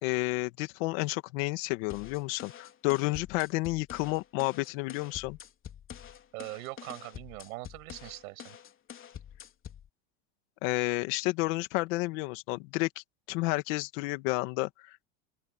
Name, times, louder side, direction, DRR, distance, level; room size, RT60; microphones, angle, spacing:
voice 1, 0.0-5.4 10.6-14.9, left 23 dB, 65° left, 2.0 m, -31 dB
sound 1, 1.9-9.9, left 9 dB, 30° left, 3.6 m, -47 dB
voice 2, 6.3-8.6, right 22 dB, 80° right, 7.3 m, -42 dB
open air
supercardioid pair, 140°, 42 cm